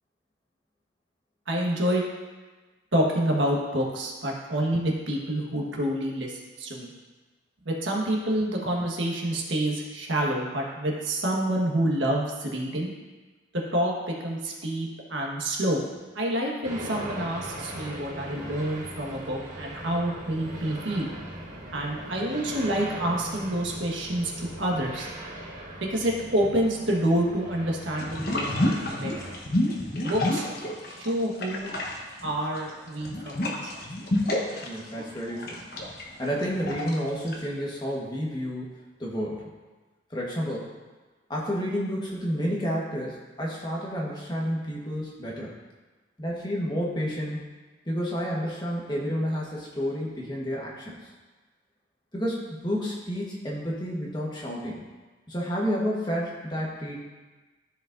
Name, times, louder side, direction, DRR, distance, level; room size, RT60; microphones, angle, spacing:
voice 1, 1.5-2.0 2.9-6.9 7.6-12.9 13.5-15.8 16.1-21.1 21.7-25.1 25.8-29.1 30.0-30.4 30.8-31.7 32.2-33.8, right 1 dB, 80° right, -2 dB, 1.5 m, -28 dB
sound 1, 16.6-29.4, right 1 dB, 40° right, 1.4 m, -39 dB
sound 2, 28.0-31.1 31.4-37.3, left 1 dB, 50° left, 1.0 m, -29 dB
voice 2, 34.6-35.6 36.2-38.7 39.0-39.5 40.1-40.7 41.3-45.5 46.2-47.4 47.9-51.0 52.1-54.8 55.3-57.0, equal, 25° left, -4 dB, 1.3 m, -30 dB
14.0 x 5.1 x 2.6 m, 1.3 s
head